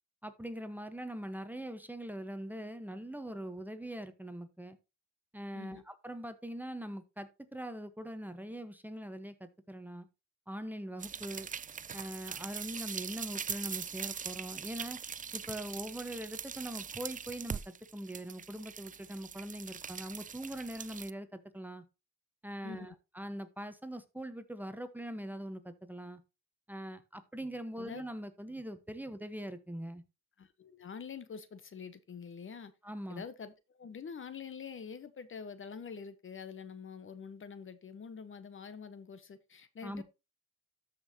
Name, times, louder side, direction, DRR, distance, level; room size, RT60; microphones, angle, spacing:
voice 1, 0.2-4.8 5.3-10.1 10.5-11.5 11.9-15.0 15.3-21.8 22.4-26.2 26.7-30.0 32.8-33.2 39.8-40.0, right 1 dB, 5° right, 1.2 m, -42 dB
sound 1, 11.0-21.1, right 7 dB, 25° right, 0.5 m, -42 dB
voice 2, 22.6-22.9 27.8-28.0 30.4-32.7 33.1-40.0, left 6 dB, 40° left, 1.2 m, -46 dB
13.0 x 5.7 x 2.9 m
cardioid pair, 90°, 30 cm